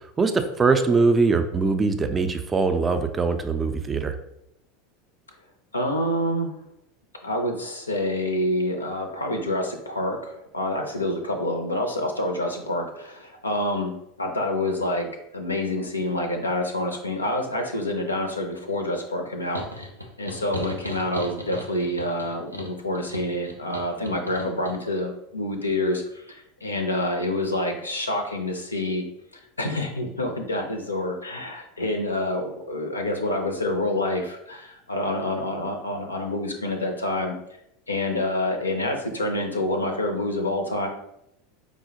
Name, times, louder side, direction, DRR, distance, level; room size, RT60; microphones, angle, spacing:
voice 1, 0.0-4.2, right 4 dB, 20° right, 8 dB, 0.3 m, -22 dB
voice 2, 5.7-6.5 7.2-19.9 20.2-29.0 29.6-37.4 37.9-40.9, left 1 dB, 80° left, 4 dB, 0.4 m, -27 dB
sound 1, 19.5-24.8, left 1 dB, 90° right, 0.4 m, -37 dB
4.7 x 2.0 x 2.7 m, 0.80 s
figure-of-eight pair, 80°, 0 cm